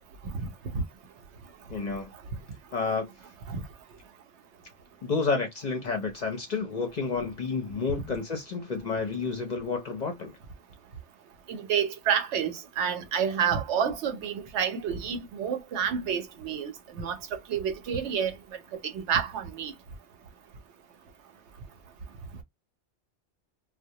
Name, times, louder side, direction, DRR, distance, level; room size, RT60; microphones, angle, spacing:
voice 1, 1.7-2.1 2.7-3.1 5.0-10.3, left 4 dB, 50° left, 0.6 m, -30 dB
voice 2, 11.5-18.3 18.8-19.7, right 7 dB, 75° right, 0.9 m, -29 dB
2.3 x 2.0 x 2.7 m
omnidirectional pair, 1.2 m